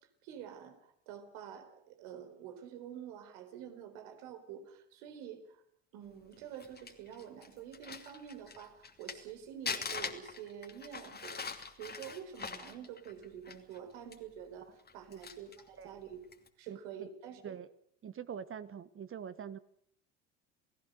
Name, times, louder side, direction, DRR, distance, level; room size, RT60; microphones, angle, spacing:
voice 1, 0.2-5.6 5.9-11.5 11.8-16.2 16.6-17.6, right 9 dB, 70° right, 8 dB, 4.5 m, -48 dB
Crumpling crinkling, 6.3-9.3 9.6-13.8 14.1-14.2 14.8-15.7 16.2-16.5, left 5 dB, 25° left, 2.8 m, -42 dB
voice 2, 16.7-17.1 17.4-17.7 18.0-19.6, right 8 dB, 30° right, 14 dB, 1.2 m, -44 dB
29.0 x 17.0 x 6.8 m, 0.65 s
hypercardioid pair, 80°, 40 cm